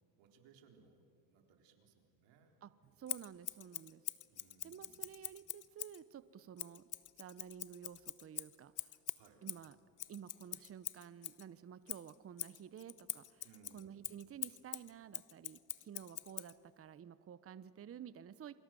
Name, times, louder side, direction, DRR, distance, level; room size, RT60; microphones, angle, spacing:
voice 1, 0.2-2.6 4.3-5.0 9.1-9.5 13.4-14.1, right 6 dB, 65° right, 3 dB, 4.1 m, -65 dB
voice 2, 3.0-4.0 4.6-6.9 7.2-8.9 9.4-9.8 10.1-13.5 13.7-18.6, right 9 dB, 30° right, 15 dB, 0.9 m, -52 dB
Scissors, 3.1-6.0 6.6-11.4 11.9-16.5, left 12 dB, 40° left, 1.0 m, -45 dB
28.5 x 24.0 x 7.7 m, 2.7 s
supercardioid pair, 90°, 45 cm